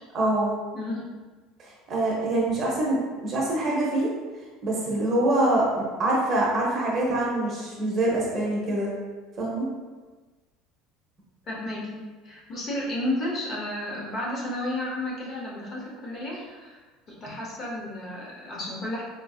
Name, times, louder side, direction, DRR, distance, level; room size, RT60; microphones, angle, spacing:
voice 1, 0.1-0.6 1.6-3.0 3.2-4.1 4.6-8.9 9.4-9.7, right 1 dB, 30° right, -4 dB, 0.9 m, -25 dB
voice 2, 0.7-1.0 11.5-16.8 17.1-19.0, left 1 dB, 30° left, -4 dB, 0.8 m, -32 dB
4.5 x 2.6 x 2.3 m, 1.3 s
cardioid pair, 150°, 0 cm